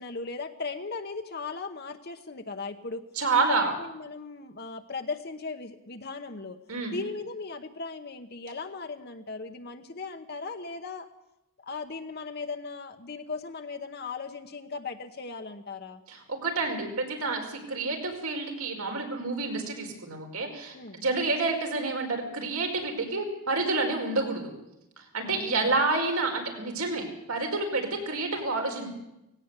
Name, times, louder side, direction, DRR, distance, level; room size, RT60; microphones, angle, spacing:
voice 1, 0.0-3.0 3.3-6.6 6.9-11.1 11.6-16.0 20.7-21.0 25.2-25.7, left 4 dB, 45° left, 5 dB, 1.0 m, -37 dB
voice 2, 3.1-3.7 6.7-6.9 16.1-24.5 25.0-28.9, right 3 dB, 80° right, 3 dB, 5.0 m, -29 dB
18.5 x 17.5 x 8.2 m, 0.89 s
head